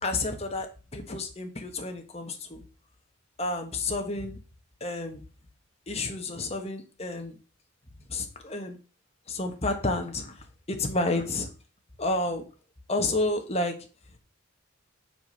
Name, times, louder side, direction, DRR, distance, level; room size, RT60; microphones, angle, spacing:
voice 1, 0.0-2.6 3.4-4.4 4.8-5.2 5.9-7.4 8.1-8.8 9.3-10.4 10.7-11.5 12.0-12.4 12.9-13.7, left 2 dB, 30° left, 4 dB, 1.3 m, -30 dB
6.9 x 5.1 x 5.6 m, 0.34 s
head